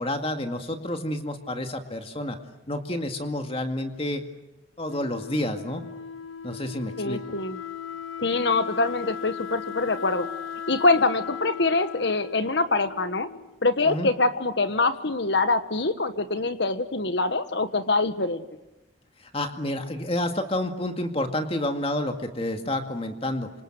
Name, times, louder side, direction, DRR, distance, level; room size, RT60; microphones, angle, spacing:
voice 1, 0.0-2.4 2.7-4.2 4.8-5.8 6.4-7.2 13.8-14.1 19.3-23.5, left 1 dB, 30° left, 6 dB, 2.1 m, -29 dB
Wind instrument woodwind instrument, 4.8-13.6, left 8 dB, 90° left, 1.4 m, -38 dB
voice 2, 7.0-7.6 8.2-10.3 10.7-13.3 13.6-18.4, left 3 dB, 60° left, 11 dB, 1.4 m, -24 dB
27.5 x 26.0 x 7.8 m, 0.96 s
head